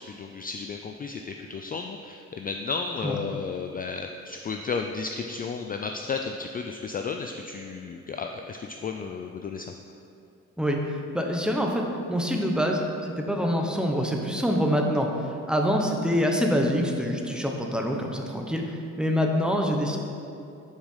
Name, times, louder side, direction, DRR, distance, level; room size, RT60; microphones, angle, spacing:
voice 1, 0.0-9.7, left 5 dB, 30° left, 4 dB, 0.4 m, -33 dB
voice 2, 11.1-15.1 15.5-20.0, equal, 5° right, 1 dB, 0.9 m, -25 dB
7.2 x 4.9 x 5.5 m, 2.6 s
cardioid pair, 90°, 30 cm